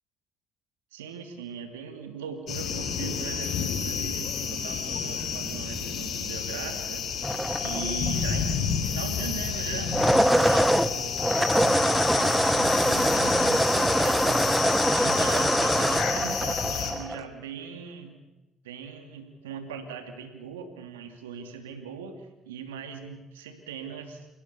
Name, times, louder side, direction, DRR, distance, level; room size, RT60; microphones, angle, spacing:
voice 1, 0.9-7.0 7.6-10.1 10.4-14.6 14.9-18.1 18.6-24.3, right 6 dB, 90° right, 6 dB, 3.1 m, -40 dB
sound 1, 2.5-16.9, left 6 dB, 55° left, 3.8 m, -30 dB
sound 2, 7.2-8.2 9.8-17.2, equal, 5° right, 1.2 m, -24 dB
29.0 x 17.0 x 7.0 m, 1.0 s
hypercardioid pair, 60°, 0 cm